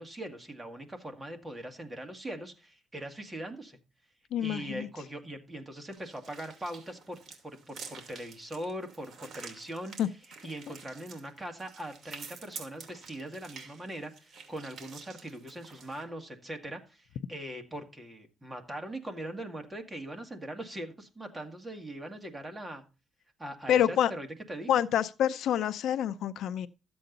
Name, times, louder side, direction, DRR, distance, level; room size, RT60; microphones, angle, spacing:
voice 1, 0.0-3.8 4.4-9.9 10.4-22.8 23.4-24.7, right 1 dB, 15° right, 2.0 m, -41 dB
voice 2, 4.3-4.9 10.0-10.1 23.7-24.1 24.7-26.7, left 10 dB, 75° left, 0.6 m, -27 dB
sound 1, 5.9-16.0, right 5 dB, 55° right, 2.5 m, -49 dB
13.0 x 7.9 x 3.9 m
cardioid pair, 120°, 0 cm